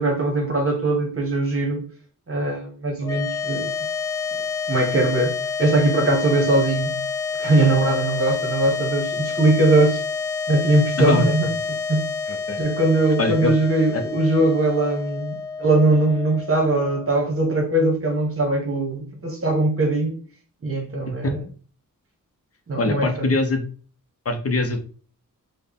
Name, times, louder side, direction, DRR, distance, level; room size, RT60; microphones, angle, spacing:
voice 1, 0.0-1.9 2.3-3.7 4.7-7.0 7.4-10.0 10.5-11.5 11.9-12.1 12.6-20.2 20.6-21.4 22.7-23.3, right 2 dB, 40° right, 1.1 m, -21 dB
sound 1, 3.0-17.4, left 5 dB, 10° left, 0.6 m, -29 dB
voice 2, 13.2-13.5 13.9-14.0 21.2-21.4 22.8-23.6 24.2-24.8, left 2 dB, 45° left, 0.7 m, -22 dB
4.2 x 2.2 x 3.4 m
wide cardioid pair, 110°, 34 cm